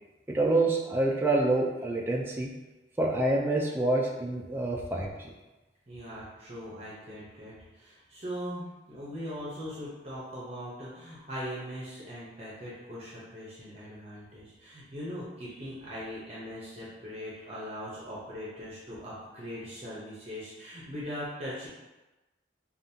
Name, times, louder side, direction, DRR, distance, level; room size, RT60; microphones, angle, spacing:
voice 1, 0.3-2.5 3.0-5.3, right 2 dB, 10° right, -2 dB, 0.4 m, -27 dB
voice 2, 5.9-21.7, equal, 35° right, -8 dB, 0.8 m, -40 dB
5.2 x 2.4 x 2.7 m, 1.1 s
head